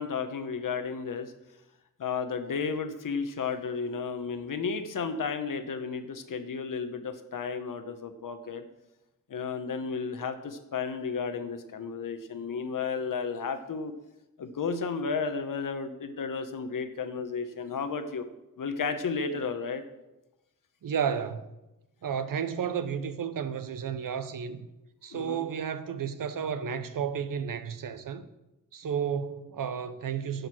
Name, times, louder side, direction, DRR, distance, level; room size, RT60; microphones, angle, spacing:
voice 1, 0.0-1.3 2.0-8.6 9.3-13.9 14.4-18.3 18.6-19.8 25.1-25.4, left 5 dB, 75° left, 1.1 m, -33 dB
voice 2, 20.8-21.5 22.0-24.6 25.0-28.2 28.7-30.5, right 7 dB, 80° right, 0.8 m, -32 dB
11.5 x 6.7 x 6.1 m
wide cardioid pair, 95°, 33 cm